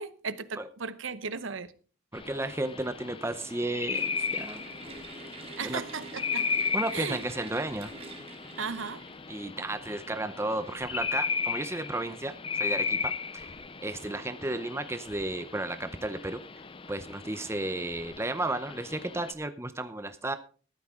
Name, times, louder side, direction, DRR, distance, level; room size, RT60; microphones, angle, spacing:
voice 1, 0.0-1.7 5.6-6.5 6.9-7.2 8.6-9.0, right 5 dB, 70° right, 0.9 m, -36 dB
sound 1, 2.1-19.3, left 5 dB, 25° left, 0.6 m, -36 dB
voice 2, 2.1-4.6 5.6-5.8 6.7-7.9 9.3-13.5 13.8-16.4 16.9-20.4, right 2 dB, 15° right, 0.6 m, -33 dB
sound 2, 3.9-9.5, right 3 dB, 30° right, 1.7 m, -46 dB
14.0 x 12.5 x 3.6 m
head